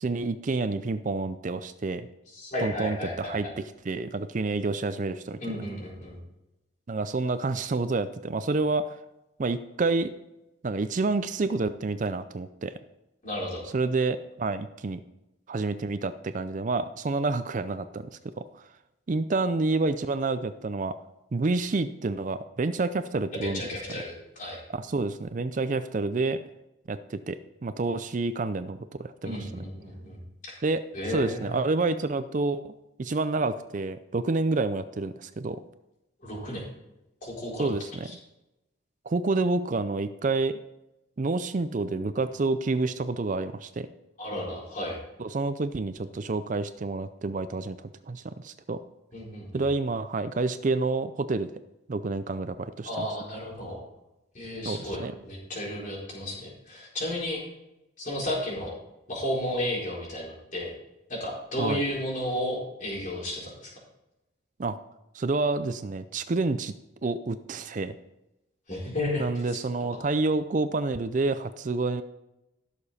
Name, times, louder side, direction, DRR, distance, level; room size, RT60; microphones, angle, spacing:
voice 1, 0.0-2.1 2.6-5.4 6.9-9.0 9.4-10.1 10.6-12.7 13.6-15.0 15.5-18.1 18.5-18.7 19.1-21.0 21.3-23.7 24.7-26.4 26.9-29.6 30.6-32.7 33.0-35.6 37.6-38.1 39.1-40.6 41.2-43.9 45.2-48.8 49.5-51.5 51.9-53.1 54.6-55.1 61.6-61.8 64.6-64.8 65.1-66.7 67.0-68.0 69.2-72.0, right 3 dB, 40° right, 11 dB, 0.4 m, -28 dB
voice 2, 2.3-3.5 5.4-6.2 13.2-13.6 23.4-24.6 29.2-30.2 30.4-30.6 30.9-31.6 36.2-36.6 37.2-37.7 38.0-38.1 44.2-45.0 49.1-49.6 52.8-53.8 54.3-57.4 58.0-58.7 59.1-60.7 61.1-63.7 68.7-69.2, left 1 dB, 40° left, -4 dB, 4.2 m, -33 dB
16.0 x 6.9 x 4.2 m, 0.93 s
head